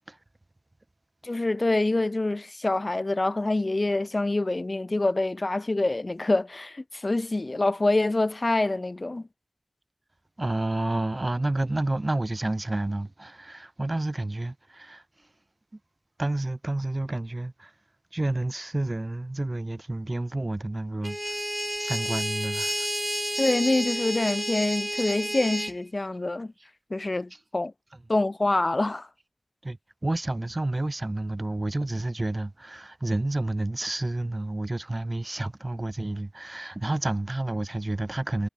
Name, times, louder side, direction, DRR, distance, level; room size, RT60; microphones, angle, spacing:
voice 1, 1.2-9.3 23.4-26.5 26.9-27.7 28.1-29.1, left 2 dB, 50° left, 0.5 m, -26 dB
voice 2, 10.4-15.0 16.2-17.7 18.1-21.3 21.8-22.9 29.6-29.8 30.0-38.5, right 2 dB, 40° right, 0.9 m, -30 dB
sound 1, 21.0-25.7, equal, 10° right, 2.2 m, -30 dB
wide cardioid pair, 55°, 0 cm